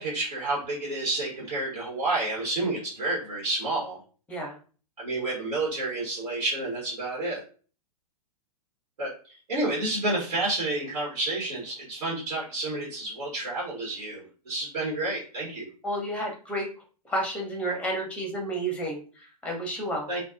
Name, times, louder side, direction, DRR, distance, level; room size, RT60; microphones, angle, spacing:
voice 1, 0.0-4.0 5.0-7.4 9.0-9.1 9.5-15.7 20.1-20.2, right 2 dB, 70° right, -5 dB, 1.1 m, -30 dB
voice 2, 15.8-16.7 17.1-20.1, right 1 dB, 5° left, 1 dB, 0.7 m, -31 dB
2.4 x 2.3 x 2.4 m, 0.39 s
figure-of-eight pair, 105°, 20 cm